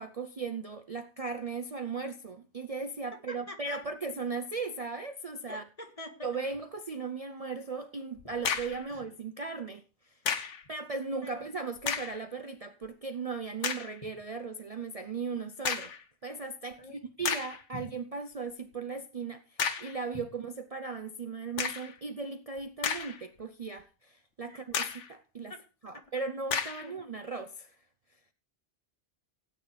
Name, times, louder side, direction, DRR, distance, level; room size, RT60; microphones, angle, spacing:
voice 1, 0.0-5.6 6.2-10.2 10.7-15.9 16.2-25.5 25.8-27.8 28.1-28.2, right 4 dB, 40° right, 0.7 m, -37 dB
voice 2, 3.3-3.8 5.5-6.3 8.9-9.0 11.2-11.4 16.8-17.0 17.7-17.8 24.5-24.6 26.8-26.9, left 2 dB, 30° left, 1.8 m, -44 dB
sound 1, 8.2-8.9 10.3-10.6 11.8-12.2 12.8-12.9 13.6-13.9 15.6-16.0 16.7-16.8 17.2-17.6 19.6-20.0 21.6-21.9 22.6-23.4 23.8-23.9 24.7-25.1 26.5-26.9, left 6 dB, 85° left, 1.3 m, -32 dB
16.5 x 9.2 x 3.3 m
omnidirectional pair, 1.2 m